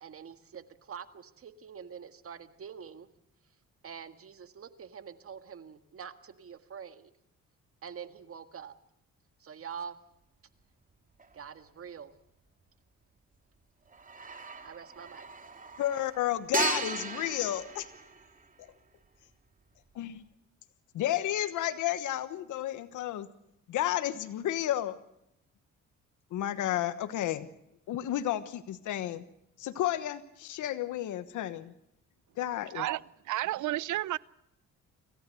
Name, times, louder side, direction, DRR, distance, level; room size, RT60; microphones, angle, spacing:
voice 1, 0.0-3.1 3.8-7.1 7.8-8.7 9.4-10.0 11.3-12.1 14.6-15.3, right 7 dB, 50° right, 1.8 m, -45 dB
sound 1, 11.2-11.3 13.9-18.7, right 4 dB, 25° right, 2.7 m, -37 dB
voice 2, 15.8-17.9 18.6-18.7 19.9-20.2 20.9-23.3 23.7-25.0 26.3-27.5 27.9-29.2 29.6-31.7 32.4-32.8, left 12 dB, 80° left, 1.3 m, -32 dB
voice 3, 32.7-34.2, right 15 dB, 75° right, 0.7 m, -32 dB
26.5 x 15.0 x 7.7 m
cardioid pair, 90°, 30 cm